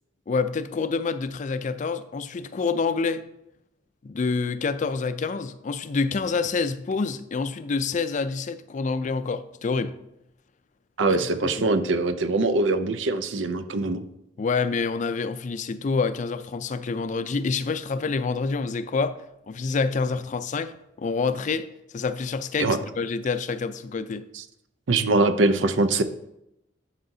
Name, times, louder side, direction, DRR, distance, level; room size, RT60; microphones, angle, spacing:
voice 1, 0.3-3.2 4.0-10.0 11.6-11.7 14.4-19.2 19.5-21.7 21.9-24.2, left 4 dB, 40° left, 0.4 m, -27 dB
voice 2, 11.0-14.0 22.6-22.8 24.9-26.0, right 2 dB, 85° right, 0.6 m, -22 dB
11.5 x 5.7 x 2.7 m
head